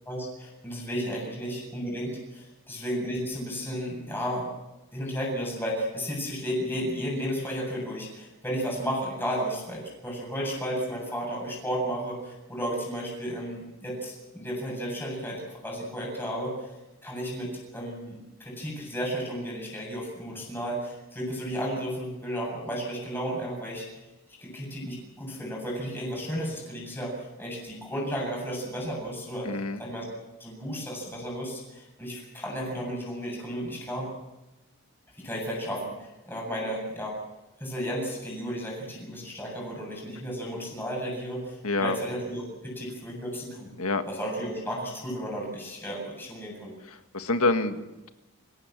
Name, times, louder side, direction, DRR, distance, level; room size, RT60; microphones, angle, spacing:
voice 1, 0.0-4.5 4.9-16.7 17.0-23.9 24.3-29.5 29.8-30.0 30.4-34.1 35.2-37.2 37.6-43.7 44.0-46.7, equal, 10° left, -2 dB, 7.9 m, -33 dB
voice 2, 29.5-29.8 41.6-42.0 43.8-44.0 46.9-48.1, left 3 dB, 80° left, 8 dB, 1.8 m, -27 dB
28.0 x 16.5 x 7.7 m, 1.0 s
head